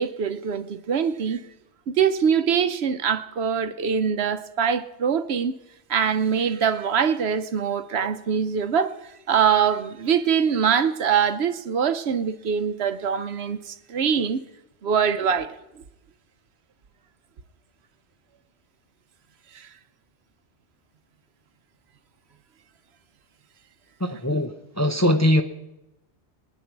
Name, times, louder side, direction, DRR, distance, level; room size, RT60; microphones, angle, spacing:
voice 1, 0.0-1.4 1.9-5.6 5.9-8.9 9.3-14.4 14.8-15.5 19.5-19.7, right 7 dB, 70° right, 1.0 m, -23 dB
voice 2, 24.0-25.4, left 1 dB, 15° left, 0.7 m, -21 dB
23.5 x 10.5 x 4.6 m
omnidirectional pair, 1.2 m